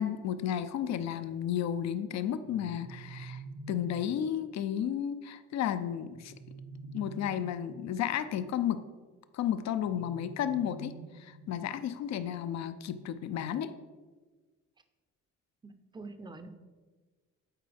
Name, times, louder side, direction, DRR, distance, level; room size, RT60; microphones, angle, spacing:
voice 1, 0.0-3.4 3.7-6.3 6.9-8.8 9.3-10.9 11.2-13.7, left 9 dB, 60° left, 11 dB, 0.5 m, -33 dB
sound 1, 2.4-4.3 6.1-8.0 9.8-11.8, right 3 dB, 55° right, 1.0 m, -47 dB
voice 2, 15.6-16.5, right 3 dB, 15° right, 8 dB, 0.5 m, -45 dB
9.0 x 4.1 x 3.4 m, 1.3 s
cardioid pair, 90°, 30 cm